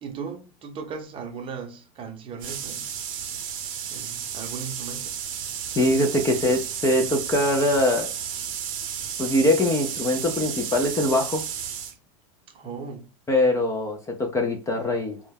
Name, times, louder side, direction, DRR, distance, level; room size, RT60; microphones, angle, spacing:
voice 1, 0.0-2.9 3.9-5.1 12.5-13.1, right 6 dB, 30° right, 0.6 m, -37 dB
sound 1, 2.4-11.9, right 8 dB, 70° right, 0.6 m, -33 dB
voice 2, 5.7-8.1 9.2-11.4 13.3-15.2, left 1 dB, 15° left, 0.4 m, -22 dB
2.2 x 2.0 x 3.2 m
supercardioid pair, 125°, 18 cm